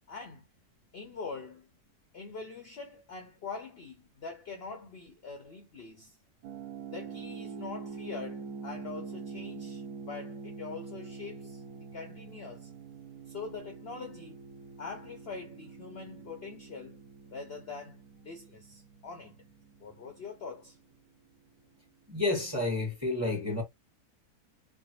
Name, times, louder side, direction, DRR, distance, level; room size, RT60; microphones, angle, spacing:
voice 1, 0.1-0.5 0.9-1.7 2.1-6.2 6.9-12.7 13.3-14.4 14.8-17.0 17.3-18.0 18.2-19.4 19.8-20.8, left 4 dB, 55° left, 0.7 m, -43 dB
sound 1, 6.4-21.2, right 5 dB, 80° right, 1.1 m, -45 dB
voice 2, 22.1-23.6, left 2 dB, 10° right, 0.9 m, -30 dB
3.3 x 2.0 x 2.7 m
omnidirectional pair, 1.6 m